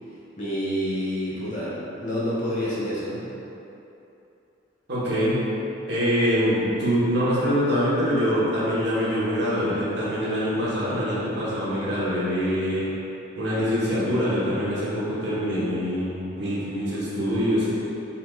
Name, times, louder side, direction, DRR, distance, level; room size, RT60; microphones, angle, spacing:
voice 1, 0.4-3.2, equal, 40° left, -8 dB, 1.1 m, -28 dB
voice 2, 4.9-5.4 5.9-12.9 13.4-17.7, equal, 65° right, -8 dB, 1.1 m, -24 dB
4.3 x 3.8 x 2.3 m, 2.9 s
head